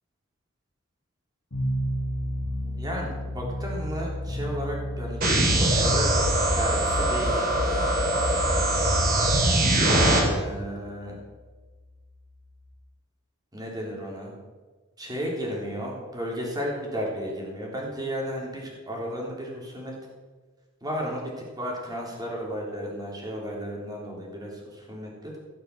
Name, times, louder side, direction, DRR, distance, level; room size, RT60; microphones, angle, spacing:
sound 1, 1.5-12.7, equal, 70° left, 2.9 m, -35 dB
voice 1, 2.6-6.1 6.6-8.1 10.3-11.1 13.5-14.3 15.0-20.0 20.8-25.4, equal, 20° right, -2 dB, 3.5 m, -34 dB
sound 2, 5.2-10.2, right 1 dB, 45° right, 3.8 m, -22 dB
17.0 x 6.8 x 6.9 m, 1.3 s
head